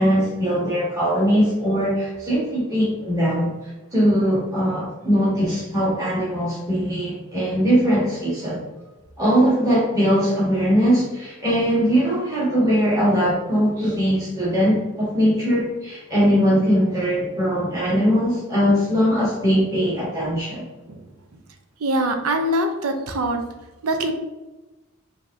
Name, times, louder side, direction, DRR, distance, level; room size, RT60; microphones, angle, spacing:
voice 1, 0.0-8.6 9.2-20.6, equal, 15° right, -8 dB, 1.4 m, -20 dB
voice 2, 21.8-23.4 23.8-24.1, right 1 dB, 80° right, 5 dB, 0.6 m, -23 dB
5.1 x 2.8 x 2.7 m, 1.1 s
head